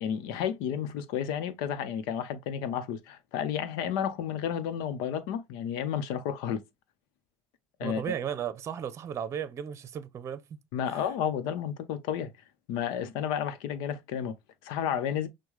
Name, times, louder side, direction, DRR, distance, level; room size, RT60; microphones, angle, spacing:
voice 1, 0.0-6.6 7.8-8.0 10.7-12.3 12.7-14.3 14.6-15.3, left 8 dB, 80° left, 0.8 m, -31 dB
voice 2, 7.8-10.4 10.9-11.0, right 8 dB, 40° right, 0.7 m, -35 dB
6.3 x 2.3 x 3.1 m
supercardioid pair, 100°, 7 cm